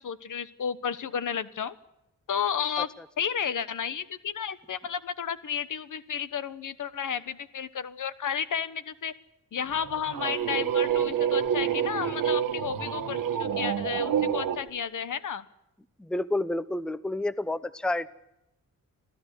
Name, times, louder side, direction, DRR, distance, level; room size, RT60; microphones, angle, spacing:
voice 1, 0.0-1.7 2.3-2.9 3.2-9.1 9.5-15.5, left 7 dB, 70° left, 14 dB, 1.2 m, -32 dB
sound 1, 9.7-14.6, right 9 dB, 85° right, 1.4 m, -28 dB
voice 2, 16.0-18.1, left 2 dB, 5° left, 15 dB, 0.8 m, -30 dB
26.5 x 15.5 x 8.2 m, 0.88 s
cardioid pair, 85°, 32 cm